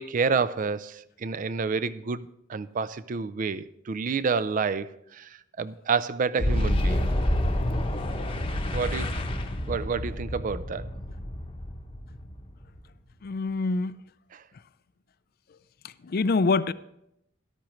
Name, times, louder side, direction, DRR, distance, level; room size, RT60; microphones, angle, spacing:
voice 1, 0.0-5.3 5.6-7.0 8.7-9.2 9.7-10.9 14.3-14.4, right 5 dB, 40° right, 0.4 m, -29 dB
Boom, 6.4-12.9, left 1 dB, 25° left, 0.9 m, -28 dB
voice 2, 13.2-14.0 15.8-16.7, left 3 dB, 50° left, 0.4 m, -25 dB
13.5 x 12.0 x 3.1 m
head